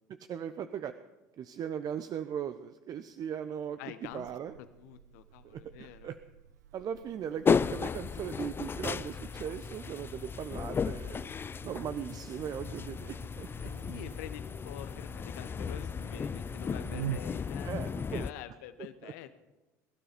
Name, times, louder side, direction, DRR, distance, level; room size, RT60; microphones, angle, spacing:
voice 1, 0.1-0.9 1.4-4.5 5.4-6.2 6.7-11.3 11.6-13.7 17.6-18.3 19.0-19.1, right 9 dB, 45° right, 10 dB, 0.8 m, -39 dB
voice 2, 3.8-4.3 4.6-6.1 13.6-17.7 18.1-19.3, left 11 dB, 70° left, 11 dB, 1.2 m, -46 dB
Buzz, 4.0-17.2, right 14 dB, 80° right, 0.4 m, -48 dB
sound 1, 7.4-18.3, left 6 dB, 25° left, 0.5 m, -34 dB
21.0 x 12.5 x 5.2 m, 1.1 s
hypercardioid pair, 70°, 9 cm